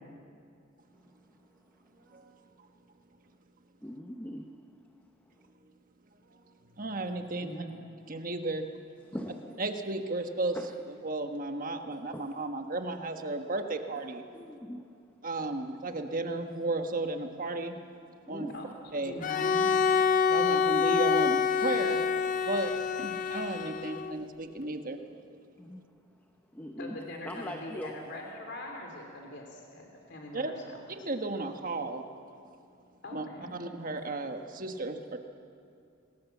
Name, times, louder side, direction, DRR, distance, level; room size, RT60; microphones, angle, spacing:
voice 1, 3.8-4.5 9.0-9.6 10.5-10.7 12.1-12.4 14.3-14.9 18.3-18.6 25.6-25.9 26.5-27.0 27.2-28.0, equal, 10° left, 3 dB, 0.9 m, -41 dB
voice 2, 6.7-7.5 8.1-8.7 9.6-10.6 10.9-14.2 15.2-17.8 18.3-18.5 18.9-19.1 20.3-22.0 22.4-22.7 23.0-25.4 30.3-30.5 30.9-32.1 33.1-33.3 33.5-35.2, right 2 dB, 40° right, 5 dB, 1.4 m, -34 dB
voice 3, 7.4-7.7 18.5-18.7 18.9-19.8 26.8-30.8 33.0-33.6, left 1 dB, 55° left, 1 dB, 3.3 m, -42 dB
Bowed string instrument, 19.2-24.2, left 6 dB, 40° left, 0.6 m, -27 dB
26.5 x 19.0 x 7.3 m, 2.5 s
head